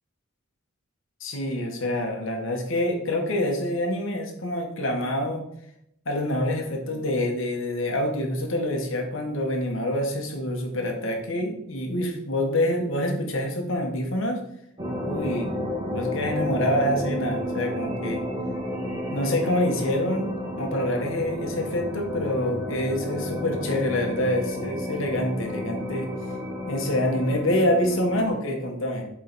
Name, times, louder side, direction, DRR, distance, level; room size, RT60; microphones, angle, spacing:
voice 1, 1.2-5.4 6.0-14.4 15.0-15.5 15.8-18.2 19.1-20.3 20.6-26.1 26.7-29.0, left 1 dB, 65° left, 2 dB, 1.2 m, -26 dB
sound 1, 14.8-28.3, left 1 dB, 20° right, 1.1 m, -31 dB
7.4 x 3.3 x 4.0 m, 0.75 s
head